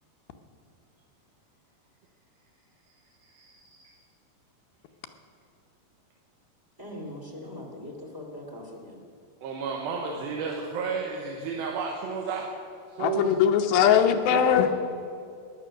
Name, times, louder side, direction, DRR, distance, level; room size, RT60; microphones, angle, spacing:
voice 1, 3.2-3.9 9.4-12.5 12.9-13.4 14.3-14.7, right 5 dB, 80° right, 0 dB, 2.9 m, -32 dB
voice 2, 6.8-9.0, left 1 dB, 20° right, -1 dB, 0.6 m, -41 dB
voice 3, 13.0-14.7, left 9 dB, 75° left, 5 dB, 2.6 m, -21 dB
16.0 x 10.5 x 6.3 m, 2.5 s
omnidirectional pair, 4.4 m